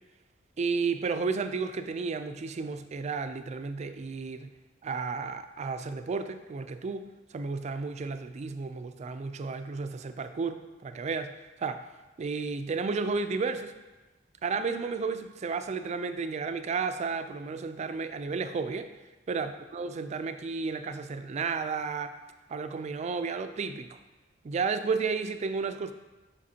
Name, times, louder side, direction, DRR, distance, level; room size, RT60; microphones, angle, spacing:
voice 1, 0.6-4.5 4.8-11.3 11.6-11.8 12.2-13.7 14.4-18.9 19.3-22.2 22.5-23.9 24.4-25.9, right 4 dB, 35° right, 9 dB, 0.3 m, -32 dB
7.5 x 5.1 x 2.8 m, 1.1 s
head